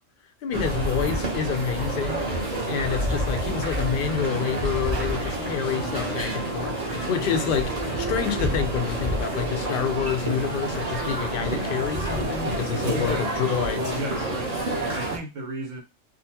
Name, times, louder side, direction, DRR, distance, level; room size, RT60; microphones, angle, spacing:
voice 1, 0.4-2.2 2.7-13.8, left 8 dB, 60° left, 0.6 m, -28 dB
sound 1, 0.5-15.2, right 1 dB, 35° right, 0.8 m, -28 dB
sound 2, 3.5-14.6, left 2 dB, 10° right, 1.0 m, -37 dB
voice 2, 12.7-13.5 13.8-15.8, right 1 dB, 80° right, 1.3 m, -34 dB
3.6 x 2.3 x 2.8 m
omnidirectional pair, 1.3 m